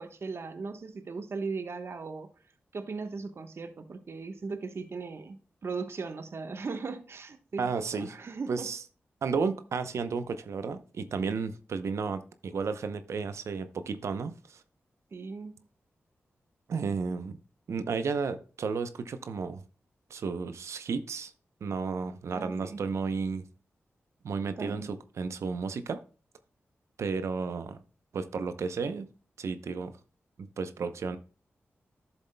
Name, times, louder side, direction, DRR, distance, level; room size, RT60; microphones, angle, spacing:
voice 1, 0.0-2.3 2.7-8.7 15.1-15.5 22.3-22.8 24.6-24.9, right 4 dB, 60° right, 1.1 m, -38 dB
voice 2, 7.6-8.1 8.5-8.8 9.2-14.6 16.7-17.4 17.7-19.6 20.1-21.3 21.6-23.4 24.2-26.0 27.0-27.8 28.1-29.1 29.4-29.9 30.4-31.2, right 5 dB, 80° right, 0.7 m, -33 dB
12.0 x 7.1 x 2.2 m
cardioid pair, 65°, 5 cm